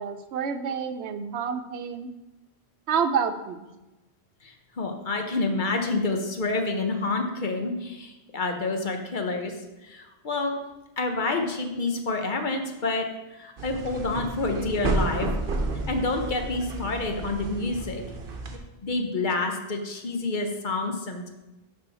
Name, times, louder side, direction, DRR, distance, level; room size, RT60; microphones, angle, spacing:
voice 1, 0.0-2.1 2.9-3.7, right 6 dB, 80° right, 9 dB, 0.9 m, -28 dB
voice 2, 4.4-9.5 9.8-10.6 11.0-15.3 15.9-18.0 18.8-21.3, left 3 dB, 50° left, 4 dB, 0.9 m, -28 dB
sound 1, 13.6-18.6, right 2 dB, 60° right, 1.0 m, -31 dB
11.0 x 3.7 x 4.0 m, 1.0 s
omnidirectional pair, 1.1 m